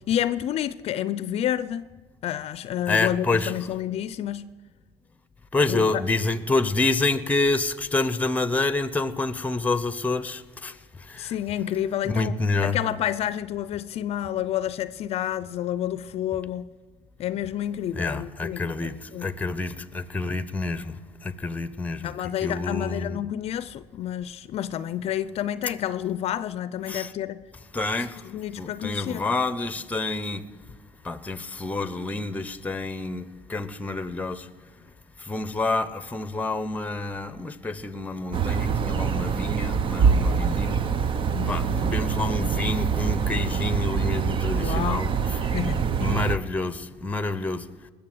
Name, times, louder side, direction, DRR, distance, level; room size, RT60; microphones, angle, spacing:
voice 1, 0.1-1.9 2.2-4.5 5.7-6.0 11.2-16.7 17.2-19.3 22.0-27.4 28.0-29.3 41.3-41.6 44.6-45.0 45.4-45.9, left 11 dB, 55° left, 0.5 m, -29 dB
voice 2, 2.9-3.5 5.5-10.7 11.1-11.3 12.0-12.8 17.9-21.0 21.2-22.1 22.4-23.2 26.9-27.1 27.7-28.2 28.6-30.4 31.0-34.5 35.2-40.8 41.5-45.1 46.0-47.6, left 3 dB, 10° left, 0.9 m, -28 dB
sound 1, 38.3-46.4, right 6 dB, 40° right, 0.7 m, -25 dB
20.0 x 7.0 x 7.7 m
supercardioid pair, 95°, 12 cm